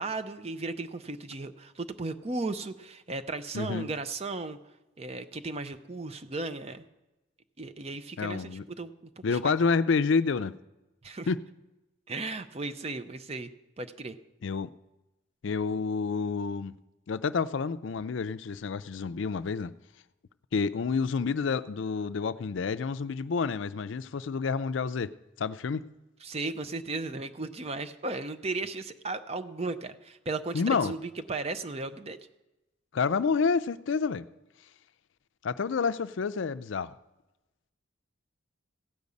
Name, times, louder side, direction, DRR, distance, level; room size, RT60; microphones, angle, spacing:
voice 1, 0.0-4.6 5.0-6.8 7.6-9.4 11.0-11.3 12.1-13.5 13.8-14.2 26.2-32.2, right 3 dB, 30° right, 10 dB, 0.6 m, -35 dB
voice 2, 3.5-3.9 8.2-8.6 9.2-10.6 11.3-11.4 14.4-14.7 15.4-16.8 17.1-19.7 20.5-25.1 25.4-25.9 30.5-30.9 32.9-34.3 35.4-36.9, left 5 dB, 65° left, 14 dB, 0.4 m, -29 dB
15.5 x 5.3 x 8.3 m, 1.0 s
head